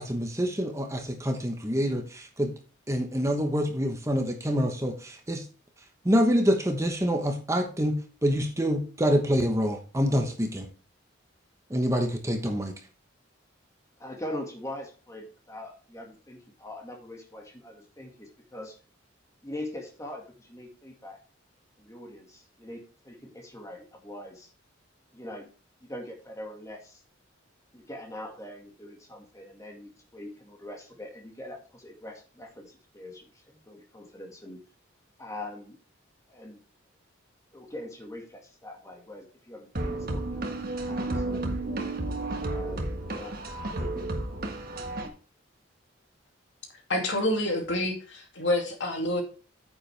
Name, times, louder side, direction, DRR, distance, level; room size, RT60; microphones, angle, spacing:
voice 1, 0.0-2.5 2.9-5.4 6.0-10.7 11.7-12.7, equal, 15° right, 4 dB, 1.1 m, -26 dB
voice 2, 14.0-18.8 19.4-21.2 21.8-24.5 25.1-25.5 25.8-27.0 27.7-34.6 35.2-35.8 36.3-36.6 37.5-41.5 42.4-43.4, left 1 dB, 15° left, 2 dB, 1.9 m, -42 dB
sound 1, 39.7-45.1, right 2 dB, 50° right, 1.5 m, -32 dB
voice 3, 46.9-49.2, left 1 dB, 65° left, 2 dB, 2.5 m, -27 dB
9.4 x 7.9 x 3.4 m, 0.36 s
head